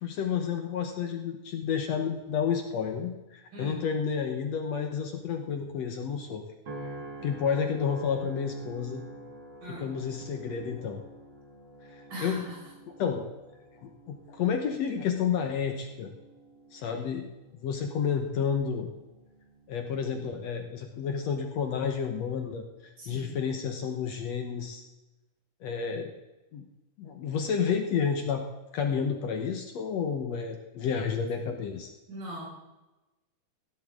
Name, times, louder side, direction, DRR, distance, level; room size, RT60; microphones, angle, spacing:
voice 1, 0.0-6.4 7.2-9.0 9.7-11.0 11.9-12.4 13.0-13.3 13.8-16.1 16.7-17.3 17.6-18.9 19.7-24.9 25.6-26.1 26.5-26.7 27.0-28.4 28.7-31.9, left 7 dB, 65° left, 4 dB, 1.9 m, -30 dB
voice 2, 3.5-3.9 9.6-10.0 12.1-12.6 16.8-16.9 23.0-23.4 32.1-32.5, right 1 dB, 75° right, -4 dB, 7.4 m, -40 dB
sound 1, 6.7-21.1 21.7-22.1, right 2 dB, 45° right, 1.7 m, -48 dB
17.0 x 10.5 x 3.7 m, 1.0 s
omnidirectional pair, 3.8 m